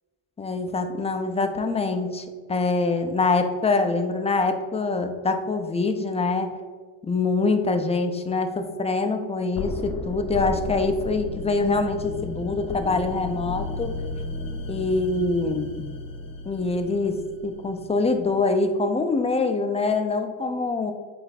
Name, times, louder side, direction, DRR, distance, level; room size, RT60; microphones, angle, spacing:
voice 1, 0.4-6.5 7.1-13.9 14.7-15.8 16.5-20.9, left 3 dB, 15° left, 6 dB, 0.4 m, -24 dB
sound 1, 9.5-18.4, left 3 dB, 45° left, 0.7 m, -34 dB
3.9 x 3.4 x 4.0 m, 1.4 s
supercardioid pair, 65°, 50 cm